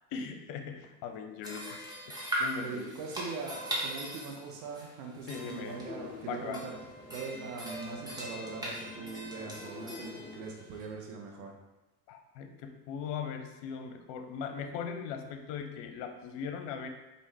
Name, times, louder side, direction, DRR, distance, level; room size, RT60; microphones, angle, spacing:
voice 1, 0.1-1.8 2.1-2.9 5.3-5.8 6.3-6.6 12.1-16.9, left 6 dB, 65° left, 6 dB, 0.7 m, -39 dB
sound 1, 1.4-10.9, right 1 dB, 10° right, 1.3 m, -40 dB
voice 2, 2.6-6.7 7.1-11.5, right 4 dB, 80° right, 1 dB, 0.9 m, -41 dB
sound 2, 5.4-10.5, left 4 dB, 10° left, 0.5 m, -48 dB
4.8 x 2.6 x 3.3 m, 1.0 s
hypercardioid pair, 70°, 47 cm